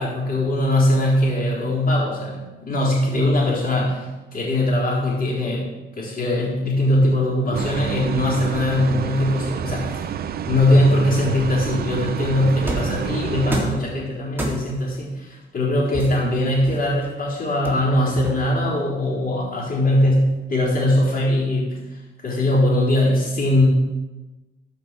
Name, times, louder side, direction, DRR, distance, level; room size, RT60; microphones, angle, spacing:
voice 1, 0.0-4.0 4.3-5.6 6.0-10.2 10.5-21.8 22.2-23.7, left 1 dB, 50° left, -11 dB, 3.8 m, -21 dB
sound 1, 7.5-13.6, right 9 dB, 50° right, 0.6 m, -28 dB
sound 2, 12.7-13.0 13.5-13.9 14.4-14.9 15.9-17.1 17.6-18.7, right 1 dB, 10° right, 2.3 m, -29 dB
14.0 x 5.2 x 4.5 m, 1.1 s
cardioid pair, 90°, 20 cm